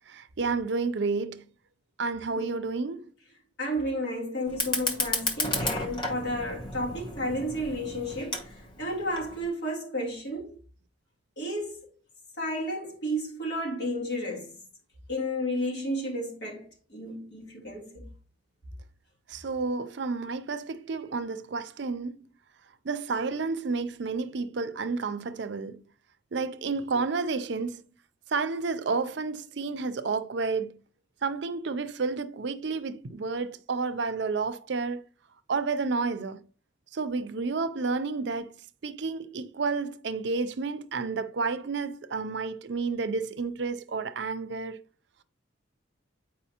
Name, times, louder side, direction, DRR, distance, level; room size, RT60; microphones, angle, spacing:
voice 1, 0.1-1.4 2.0-3.1 19.3-22.2 22.8-25.8 26.3-27.8 28.3-30.8 31.2-35.1 35.5-36.4 36.9-38.5 38.8-44.8, right 4 dB, 65° right, 0.5 m, -30 dB
voice 2, 3.6-8.5 8.8-10.5 11.4-11.9 12.4-14.5 15.1-18.1, equal, 65° left, 3.0 m, -32 dB
Fire, 4.5-9.5, left 2 dB, 25° left, 0.9 m, -33 dB
8.1 x 4.8 x 2.9 m
head